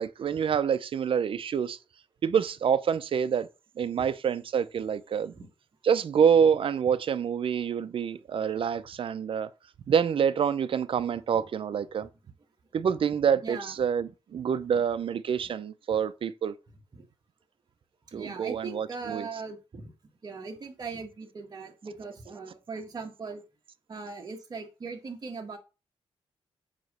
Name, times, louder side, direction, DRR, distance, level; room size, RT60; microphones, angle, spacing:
voice 1, 0.0-1.8 2.2-3.5 3.8-5.3 5.8-9.5 9.9-12.1 12.7-16.5 18.1-19.3, right 7 dB, 55° right, 0.6 m, -27 dB
voice 2, 13.4-13.8 14.7-14.8 16.9-17.0 18.1-19.9 20.2-23.4 23.9-25.6, right 4 dB, 40° right, 1.7 m, -39 dB
9.1 x 3.1 x 6.6 m
wide cardioid pair, 160°, 10 cm